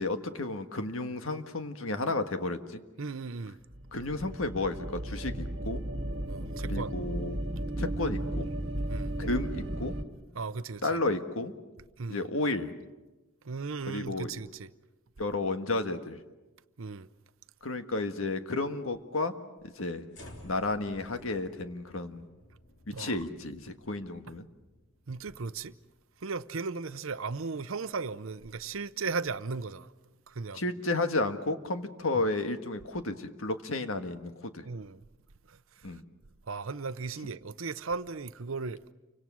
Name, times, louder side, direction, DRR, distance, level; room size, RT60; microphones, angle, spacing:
voice 1, 0.0-2.8 3.9-5.8 6.6-7.4 7.8-8.5 9.2-9.9 10.8-11.5 12.1-12.7 13.9-14.3 15.2-16.2 17.6-19.3 19.7-20.0 20.4-22.3 23.0-24.5 30.5-34.6 35.8-36.0, left 2 dB, 85° left, 1.6 m, -32 dB
voice 2, 3.0-3.6 6.3-6.9 8.9-9.1 10.3-11.0 12.0-12.3 13.4-14.7 16.8-17.1 22.9-23.2 25.1-25.7 26.2-29.9 30.3-30.6 32.1-32.2 34.6-35.0 35.5-36.0 36.5-38.8, right 4 dB, 80° right, 0.7 m, -36 dB
sound 1, 3.7-10.0, right 1 dB, 55° right, 1.9 m, -35 dB
sound 2, 20.1-26.4, left 1 dB, 60° left, 3.6 m, -54 dB
29.5 x 25.0 x 6.3 m
head